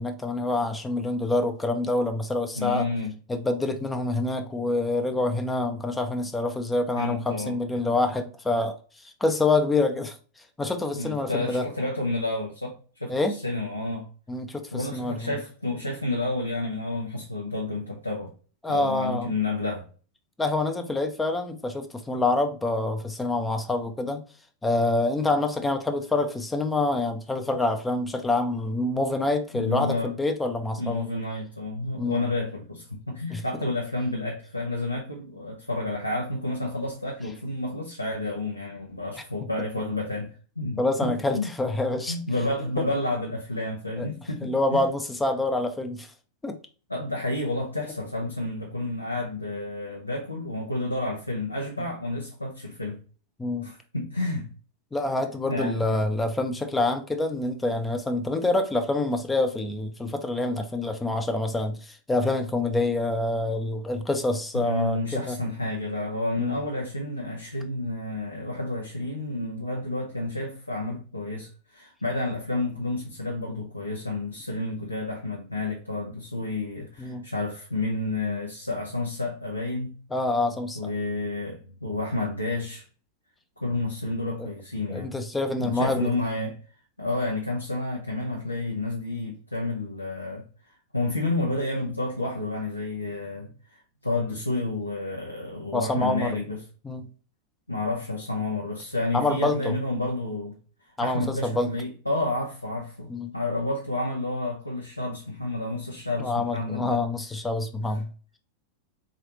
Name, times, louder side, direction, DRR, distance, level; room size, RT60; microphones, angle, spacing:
voice 1, 0.0-2.9 3.3-10.2 10.6-11.7 13.1-13.4 14.3-15.4 18.6-19.3 20.4-24.2 24.6-31.0 32.0-32.2 33.3-33.4 40.8-42.2 42.8-42.9 44.0-44.1 44.4-46.1 46.4-46.6 53.4-53.7 54.9-65.4 66.4-66.6 77.0-77.2 80.1-80.9 84.4-84.5 84.9-86.1 95.7-96.4 96.8-97.1 99.1-99.8 101.0-101.7 103.1-103.3 106.2-108.1, left 2 dB, 10° left, 0.5 m, -26 dB
voice 2, 2.6-3.1 7.0-7.8 10.9-14.1 14.7-18.3 18.7-19.9 29.5-30.1 30.8-41.5 42.1-44.8 46.9-53.0 53.6-54.5 55.5-56.0 64.5-79.9 80.7-82.9 83.6-85.1 85.6-86.6 87.0-90.5 90.9-96.6 97.7-100.6 101.0-107.0, left 2 dB, 85° left, 0.7 m, -30 dB
3.8 x 3.1 x 2.9 m
figure-of-eight pair, 90°, 0 cm